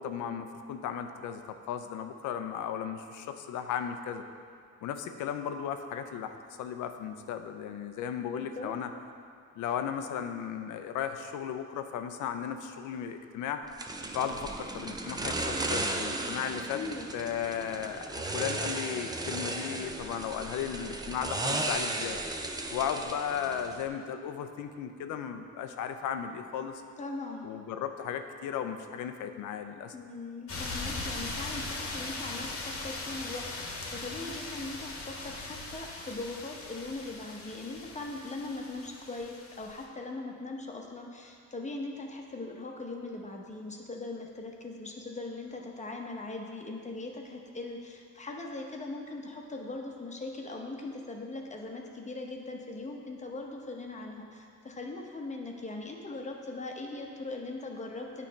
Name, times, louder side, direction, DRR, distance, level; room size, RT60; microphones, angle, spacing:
voice 1, 0.0-1.4 1.7-4.2 4.8-8.9 9.6-13.6 14.1-16.8 17.1-22.2 22.7-26.8 27.4-29.9, left 8 dB, 85° left, 8 dB, 0.5 m, -35 dB
voice 2, 8.2-8.7 16.7-17.1 27.0-27.5 29.9-58.3, left 2 dB, 25° left, 1 dB, 0.9 m, -40 dB
sound 1, 13.8-23.9, right 2 dB, 15° right, 0.5 m, -35 dB
sound 2, 30.5-39.8, left 2 dB, 45° left, 1.1 m, -39 dB
8.9 x 3.3 x 5.2 m, 2.2 s
cardioid pair, 90°, 30 cm